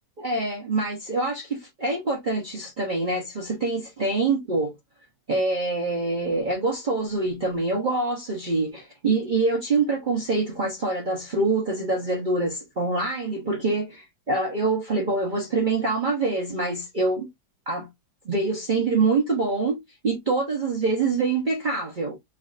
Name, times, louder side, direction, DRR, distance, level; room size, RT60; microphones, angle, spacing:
voice 1, 0.2-4.7 5.3-17.3 17.7-17.9 18.2-22.1, right 3 dB, 70° right, 0.4 m, -25 dB
4.6 x 2.4 x 2.4 m
omnidirectional pair, 2.1 m